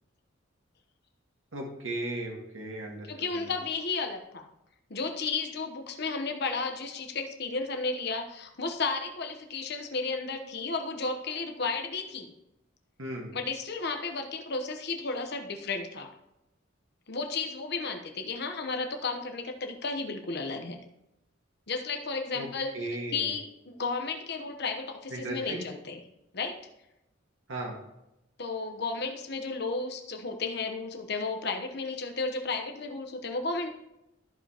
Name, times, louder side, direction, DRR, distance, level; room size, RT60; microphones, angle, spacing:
voice 1, 1.5-3.1 3.3-3.5 13.0-13.3 22.3-22.5 22.7-23.3 25.1-25.6 27.5-27.7, right 1 dB, 80° right, -1 dB, 1.7 m, -36 dB
voice 2, 3.1-4.5 4.9-12.3 13.3-16.1 17.1-20.8 21.7-26.0 26.3-26.6 28.4-33.7, left 4 dB, 55° left, 5 dB, 1.0 m, -33 dB
13.5 x 5.1 x 2.9 m, 0.88 s
head